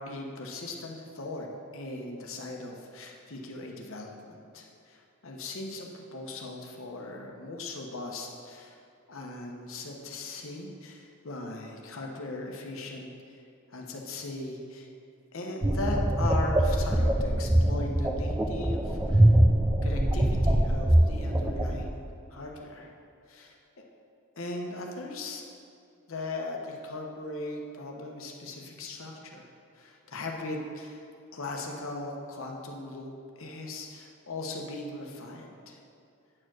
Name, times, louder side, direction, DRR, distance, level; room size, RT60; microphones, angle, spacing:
voice 1, 0.0-8.8 9.1-13.4 13.7-14.9 15.3-19.3 19.8-22.9 23.3-23.8 24.4-25.4 26.1-29.5 29.7-31.0 31.3-33.1 33.4-35.8, left 2 dB, 70° left, 1 dB, 1.0 m, -38 dB
sound 1, 15.6-21.9, right 1 dB, 15° right, 0.4 m, -23 dB
8.7 x 4.6 x 6.2 m, 2.5 s
head